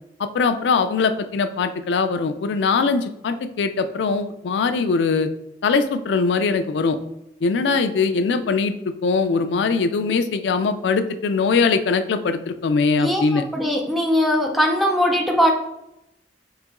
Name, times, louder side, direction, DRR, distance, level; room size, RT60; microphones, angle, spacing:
voice 1, 0.3-5.3 5.6-7.0 7.4-13.4, left 4 dB, 80° left, 9 dB, 0.4 m, -21 dB
voice 2, 13.0-15.5, equal, ahead, 1 dB, 0.5 m, -20 dB
4.0 x 2.9 x 3.6 m, 0.85 s
head